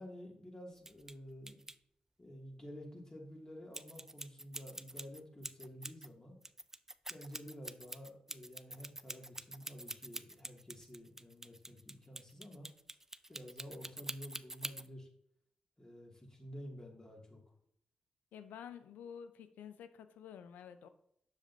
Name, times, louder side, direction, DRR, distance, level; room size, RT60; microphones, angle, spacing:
voice 1, 0.0-1.6 2.2-6.4 7.1-12.7 13.3-15.1 15.8-17.4, equal, 25° left, -1 dB, 2.4 m, -51 dB
sound 1, 0.8-1.1 1.5-1.7 3.7-6.1 6.4-14.9, right 1 dB, 15° right, 0.4 m, -46 dB
voice 2, 18.3-20.9, left 8 dB, 80° left, 11 dB, 0.5 m, -50 dB
7.5 x 6.6 x 2.7 m, 0.70 s
hypercardioid pair, 40°, 3 cm